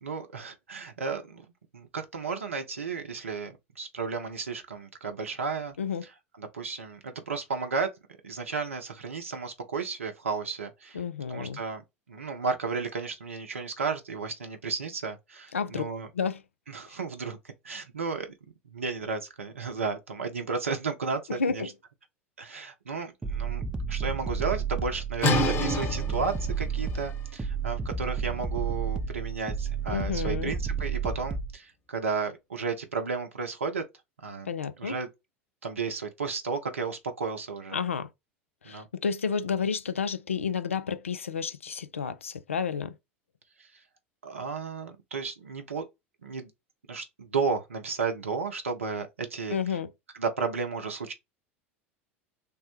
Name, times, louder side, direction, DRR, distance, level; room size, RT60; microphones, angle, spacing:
voice 1, 0.0-1.5 1.7-5.8 6.4-7.9 8.2-11.0 11.3-11.8 12.1-16.1 16.7-17.4 17.6-18.3 18.7-21.7 22.4-23.6 23.9-33.8 34.2-34.5 34.8-35.1 35.6-37.8 38.6-38.9 43.6-43.8 44.2-45.8 46.2-46.5 46.9-49.8 50.1-51.1, right 5 dB, 80° right, 0.6 m, -33 dB
voice 2, 10.9-11.6 15.5-15.8 16.1-16.4 21.4-21.7 29.9-30.5 34.5-35.0 37.7-38.1 38.6-42.9 49.5-49.9, left 6 dB, 80° left, 0.3 m, -30 dB
sound 1, 23.2-31.5, right 6 dB, 10° right, 0.4 m, -31 dB
sound 2, 25.2-30.8, left 1 dB, 35° left, 1.0 m, -32 dB
3.4 x 2.1 x 2.9 m
figure-of-eight pair, 80°, 7 cm